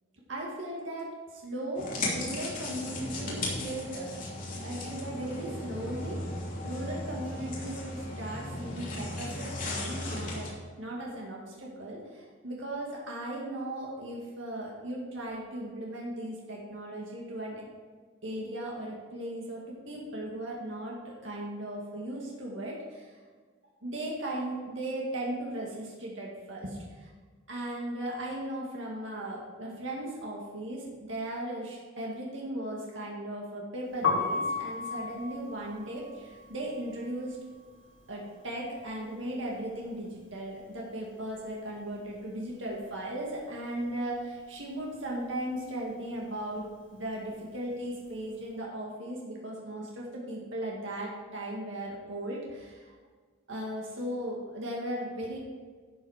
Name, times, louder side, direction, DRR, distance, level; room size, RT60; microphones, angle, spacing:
voice 1, 0.3-4.2 4.6-6.2 6.6-10.5 10.8-17.6 18.2-23.1 23.8-27.1 27.5-37.4 38.1-46.7 46.9-52.9 53.5-55.4, right 1 dB, 70° right, -3 dB, 2.0 m, -37 dB
sound 1, 1.7-10.5, left 2 dB, 45° left, 3.0 m, -36 dB
Piano, 33.9-39.8 40.1-41.7 42.0-48.4, left 4 dB, 75° left, 2.1 m, -36 dB
12.0 x 7.1 x 5.0 m, 1.5 s
head